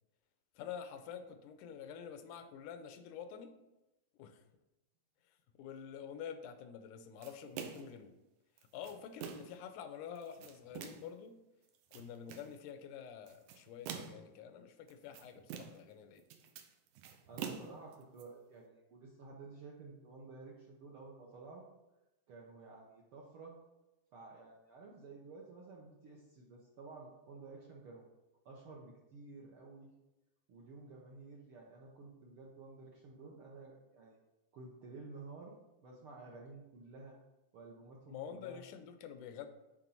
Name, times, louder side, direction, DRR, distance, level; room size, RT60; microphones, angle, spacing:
voice 1, 0.6-3.5 4.2-4.4 5.6-8.1 8.7-11.4 11.9-16.2 38.1-39.5, left 8 dB, 85° left, 9 dB, 2.2 m, -48 dB
sound 1, 7.2-8.0 8.6-9.6 10.2-11.1 11.7-12.5 13.3-14.3 14.9-15.9 16.2-18.2, right 8 dB, 85° right, 2.1 m, -46 dB
voice 2, 17.3-21.6 22.3-23.6 24.1-28.0 28.4-29.9 30.5-34.2 34.5-37.1 37.5-38.6, right 3 dB, 65° right, -2 dB, 1.4 m, -52 dB
8.7 x 3.7 x 5.5 m, 0.98 s
omnidirectional pair, 3.5 m